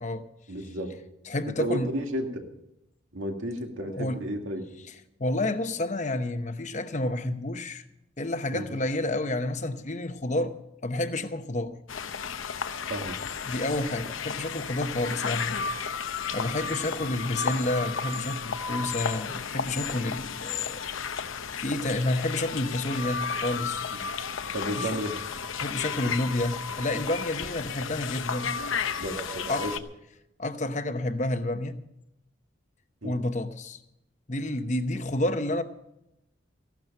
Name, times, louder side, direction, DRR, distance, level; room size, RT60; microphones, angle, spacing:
voice 1, 0.5-0.9 1.6-2.5 3.1-4.6 8.5-8.7 12.9-13.2 24.5-25.2 29.0-29.7 33.0-33.2, equal, 80° right, 2.2 m, -32 dB
voice 2, 1.3-1.9 3.8-4.2 5.2-7.9 8.2-10.5 10.8-11.8 13.5-16.0 16.3-20.8 21.1-23.8 24.8-25.0 25.6-28.5 29.5-29.7 30.4-31.8 33.0-33.8 34.3-35.6, left 1 dB, 35° left, 0.9 m, -30 dB
sound 1, 11.9-29.8, left 6 dB, 85° left, 0.8 m, -33 dB
15.5 x 12.0 x 5.4 m
head